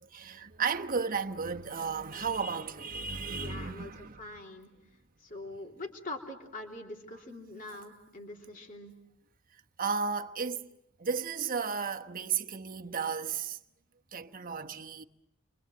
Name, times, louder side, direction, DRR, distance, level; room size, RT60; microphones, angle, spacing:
voice 1, 0.0-4.2 9.8-10.7 11.0-13.6 14.1-15.0, right 5 dB, 45° right, 1.1 m, -34 dB
voice 2, 3.4-4.7 5.2-8.9, left 2 dB, 45° left, 3.3 m, -43 dB
29.0 x 24.0 x 7.7 m
head